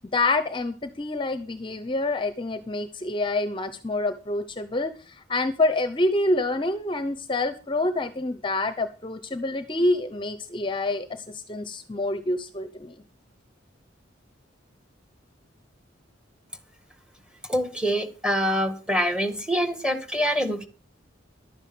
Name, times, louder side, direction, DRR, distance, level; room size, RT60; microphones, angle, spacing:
voice 1, 0.0-13.0, left 2 dB, 25° left, 0.8 m, -27 dB
voice 2, 17.4-20.7, equal, 5° right, 1.7 m, -25 dB
12.0 x 9.7 x 6.2 m
head